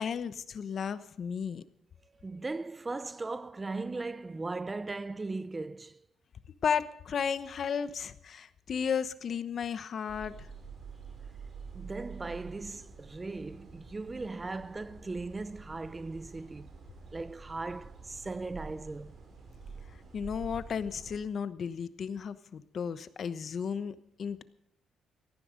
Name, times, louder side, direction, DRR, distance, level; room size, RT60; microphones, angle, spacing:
voice 1, 0.0-1.6 6.6-10.5 20.1-24.4, left 7 dB, 55° left, 1.0 m, -34 dB
voice 2, 2.0-6.1 11.7-16.7 17.1-19.2, right 3 dB, 25° right, 0.6 m, -38 dB
sound 1, 10.1-21.2, right 5 dB, 50° right, 5.4 m, -48 dB
17.5 x 14.5 x 5.2 m
cardioid pair, 90°, 0 cm